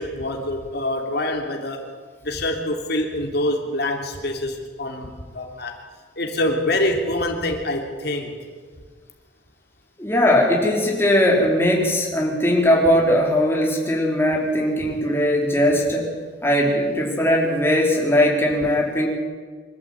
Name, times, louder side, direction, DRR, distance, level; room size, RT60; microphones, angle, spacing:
voice 1, 0.0-1.9 2.2-5.8 6.2-8.4, left 1 dB, 60° left, 2 dB, 3.3 m, -25 dB
voice 2, 10.0-16.1 16.4-19.1, left 1 dB, 15° left, -2 dB, 4.8 m, -19 dB
25.5 x 13.5 x 9.0 m, 1.5 s
head